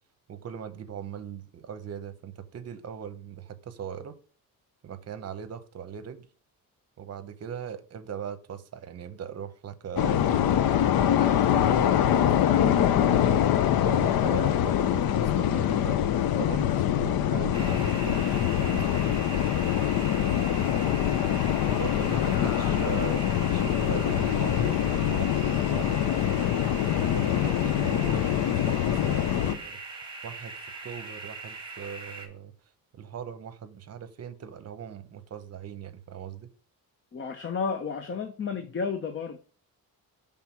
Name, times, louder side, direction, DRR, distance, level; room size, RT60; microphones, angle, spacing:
voice 1, 0.3-4.2 4.8-6.3 7.0-10.3 10.9-16.0 16.3-19.1 21.6-26.0 26.8-29.8 30.2-30.5 30.8-32.5 32.9-36.5, right 8 dB, 45° right, 0.8 m, -40 dB
sound 1, 10.0-29.5, left 10 dB, 75° left, 0.6 m, -24 dB
sound 2, 17.5-32.3, right 3 dB, 15° right, 1.3 m, -41 dB
voice 2, 22.2-23.1 37.1-39.4, left 5 dB, 35° left, 0.7 m, -33 dB
5.9 x 3.6 x 5.8 m
cardioid pair, 120°, 36 cm